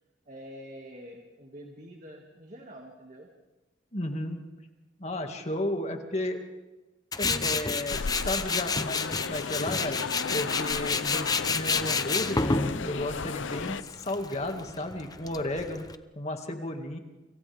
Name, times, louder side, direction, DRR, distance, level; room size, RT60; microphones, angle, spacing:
voice 1, 0.3-3.3 5.4-5.5, equal, 40° right, 1 dB, 2.2 m, -46 dB
voice 2, 3.9-4.5 5.0-6.4 7.2-10.0 10.3-12.6 12.8-15.8 16.2-17.0, left 1 dB, 35° left, 4 dB, 2.1 m, -33 dB
Tools, 7.1-16.0, left 4 dB, 20° left, 0.8 m, -30 dB
sound 1, 7.9-13.8, left 5 dB, 90° left, 0.7 m, -35 dB
29.5 x 26.5 x 3.6 m, 1.1 s
head